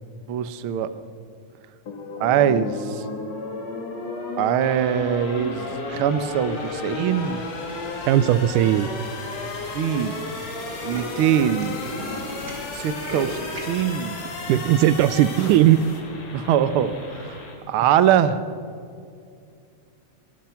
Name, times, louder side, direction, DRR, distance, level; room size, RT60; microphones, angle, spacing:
voice 1, 0.3-0.9 2.2-3.1 4.4-7.4 9.6-10.2 10.9-11.8 12.7-14.2 16.3-17.4 17.7-18.4, right 9 dB, 70° right, 12 dB, 1.3 m, -22 dB
sound 1, 1.9-16.0, left 3 dB, 55° left, 3.7 m, -33 dB
sound 2, 4.6-17.5, left 2 dB, 85° left, 5.1 m, -42 dB
Tools, 7.7-8.2 8.8-8.9 9.1-9.2 9.4-9.6 9.9-10.1 10.3-13.8, equal, 35° right, 4.6 m, -36 dB
voice 2, 8.1-8.9 14.5-15.8, right 13 dB, 90° right, 16 dB, 2.2 m, -17 dB
24.0 x 21.0 x 5.9 m, 2.3 s
omnidirectional pair, 3.6 m